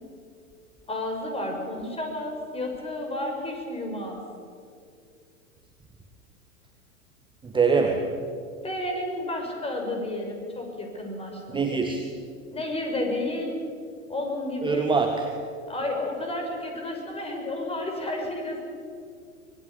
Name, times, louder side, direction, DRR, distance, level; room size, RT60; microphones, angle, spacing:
voice 1, 0.9-4.2 8.6-11.6 12.5-13.6 14.1-14.9 15.7-18.6, left 1 dB, 15° left, 2 dB, 6.2 m, -31 dB
voice 2, 7.4-8.1 11.5-12.1 14.6-15.3, right 5 dB, 10° right, 4 dB, 1.8 m, -23 dB
25.5 x 20.5 x 8.5 m, 2.3 s
figure-of-eight pair, 100°, 41 cm